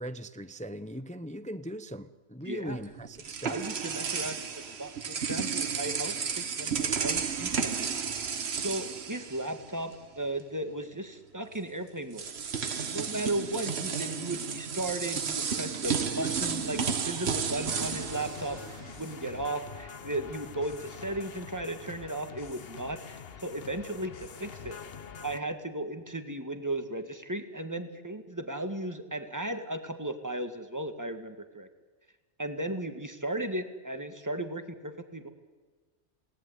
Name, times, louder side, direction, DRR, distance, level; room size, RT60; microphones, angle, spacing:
voice 1, 0.0-3.6 4.1-4.3, equal, 10° left, 0.6 m, -40 dB
voice 2, 2.4-2.8 3.5-8.0 8.5-12.3 12.9-24.8 25.2-31.7 32.4-35.3, right 1 dB, 15° right, 2.0 m, -36 dB
sound 1, 2.7-9.9 10.2-10.4 11.5-11.6 12.1-19.3, right 6 dB, 65° right, 1.4 m, -33 dB
sound 2, 17.6-25.4, left 7 dB, 55° left, 1.2 m, -45 dB
28.0 x 18.5 x 9.6 m
omnidirectional pair, 1.2 m